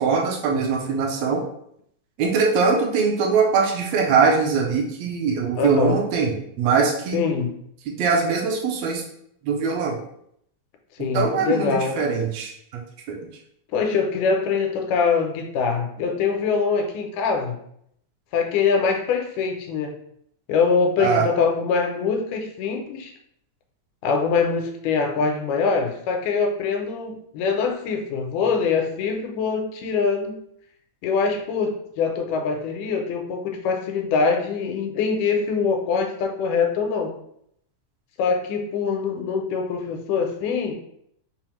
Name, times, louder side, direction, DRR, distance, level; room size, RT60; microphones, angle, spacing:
voice 1, 0.0-1.4 2.2-7.2 7.9-9.0 9.4-10.0 11.1-12.8 13.1-13.2 21.0-21.3, right 5 dB, 80° right, 0 dB, 1.6 m, -22 dB
voice 2, 5.6-6.0 7.1-7.5 11.0-12.0 13.7-17.6 18.3-20.0 20.5-23.1 24.0-30.4 31.0-37.1 38.2-40.7, left 5 dB, 85° left, 3 dB, 2.1 m, -23 dB
5.4 x 2.0 x 2.9 m, 0.71 s
omnidirectional pair, 3.5 m